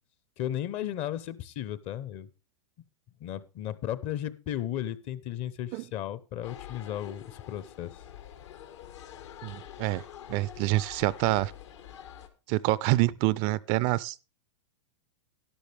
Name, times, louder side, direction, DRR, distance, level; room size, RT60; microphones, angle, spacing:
voice 1, 0.4-2.3 3.2-8.0, left 11 dB, 40° left, 0.9 m, -35 dB
sound 1, 6.4-12.3, left 10 dB, 75° left, 1.6 m, -46 dB
voice 2, 9.4-10.0 10.3-11.5 12.5-14.2, right 18 dB, 45° right, 0.4 m, -26 dB
12.0 x 11.5 x 3.4 m
hypercardioid pair, 115°, 15 cm